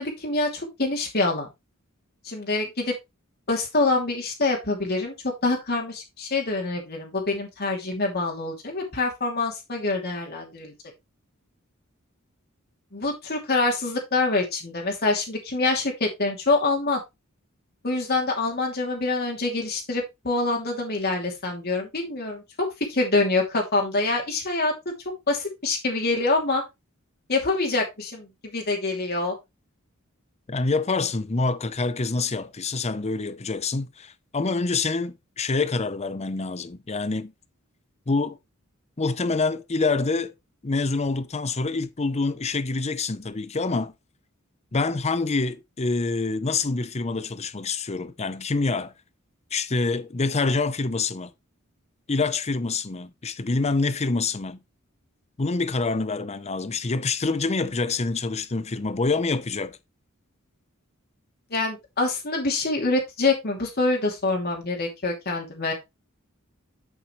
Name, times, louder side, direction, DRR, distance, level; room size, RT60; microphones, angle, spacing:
voice 1, 0.0-1.5 2.2-2.9 3.5-5.1 5.4-10.7 12.9-17.0 17.8-24.7 25.3-26.6 27.3-29.3 61.5-65.7, left 3 dB, 50° left, 2.6 m, -25 dB
voice 2, 30.5-37.3 38.1-38.4 39.0-40.3 40.6-43.9 44.7-48.9 49.5-51.3 52.1-54.6 55.4-59.8, left 3 dB, 30° left, 0.7 m, -26 dB
8.0 x 7.2 x 3.1 m
head